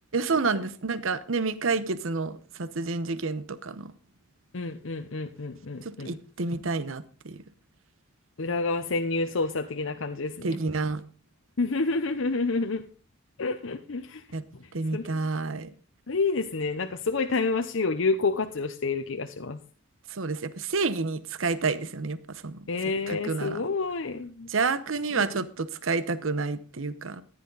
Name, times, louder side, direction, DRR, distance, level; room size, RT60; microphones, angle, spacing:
voice 1, 0.1-3.9 6.1-7.4 10.4-11.0 14.3-14.4 14.7-15.7 20.1-22.2 22.4-22.6 23.1-23.6 24.5-27.2, right 4 dB, 70° right, 15 dB, 0.9 m, -29 dB
voice 2, 4.5-6.2 8.4-10.6 11.6-12.8 13.4-14.2 14.9-15.1 16.1-19.6 22.7-24.5 25.1-25.4, left 3 dB, 65° left, 7 dB, 0.8 m, -29 dB
14.5 x 10.5 x 4.0 m, 0.36 s
head